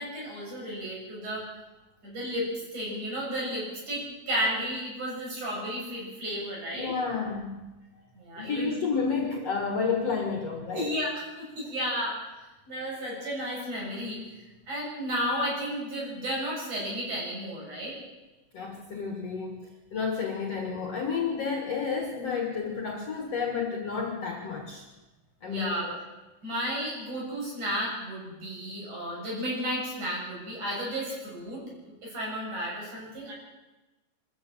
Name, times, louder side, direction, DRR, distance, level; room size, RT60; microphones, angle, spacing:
voice 1, 0.0-1.5 2.0-6.9 8.1-8.7 10.7-11.1 11.6-12.2 12.7-14.2 14.7-17.9 25.5-25.9 26.4-31.6 32.0-33.3, equal, 50° right, -4 dB, 8.9 m, -33 dB
voice 2, 6.7-7.7 8.4-11.0 18.5-24.9 25.4-26.0, left 5 dB, 50° left, 3 dB, 2.5 m, -31 dB
25.5 x 14.0 x 7.2 m, 1.1 s
omnidirectional pair, 4.4 m